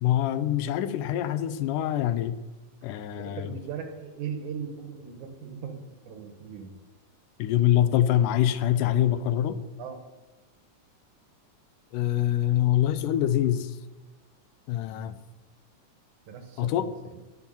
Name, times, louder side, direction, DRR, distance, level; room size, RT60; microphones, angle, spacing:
voice 1, 0.0-2.4 2.8-3.5 7.4-9.6 11.9-13.8 14.7-15.2 16.6-16.9, left 11 dB, 85° left, 13 dB, 2.2 m, -25 dB
voice 2, 3.2-6.7 9.8-10.0 16.3-17.2, right 7 dB, 75° right, 6 dB, 2.7 m, -39 dB
11.0 x 5.8 x 9.0 m, 1.1 s
omnidirectional pair, 3.6 m